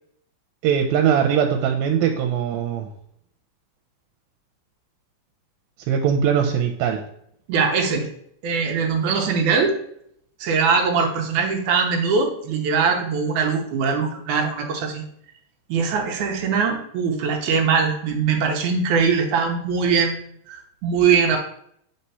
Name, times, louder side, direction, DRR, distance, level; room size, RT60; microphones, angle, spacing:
voice 1, 0.6-2.9 5.9-7.0, right 8 dB, 90° right, 3 dB, 2.4 m, -21 dB
voice 2, 7.5-8.1 8.4-9.7 10.4-15.0 15.7-21.4, right 5 dB, 70° right, 2 dB, 2.0 m, -21 dB
4.4 x 4.3 x 5.5 m, 0.69 s
omnidirectional pair, 4.1 m